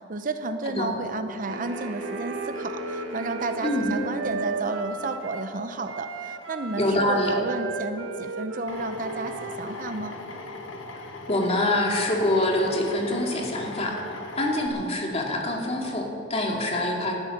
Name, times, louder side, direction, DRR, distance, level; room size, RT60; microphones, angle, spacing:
voice 1, 0.0-10.2, right 3 dB, 45° right, 9 dB, 0.7 m, -32 dB
sound 1, 1.5-4.8, right 2 dB, 65° right, 1.7 m, -38 dB
Wind instrument woodwind instrument, 1.5-5.5 5.8-10.1, right 3 dB, 85° right, 1.2 m, -35 dB
voice 2, 6.8-7.3 11.3-14.0 14.3-17.1, left 1 dB, 30° left, 0 dB, 2.4 m, -25 dB
Drill, 8.7-14.7, left 3 dB, 85° left, 1.7 m, -39 dB
19.0 x 12.5 x 5.9 m, 3.0 s
head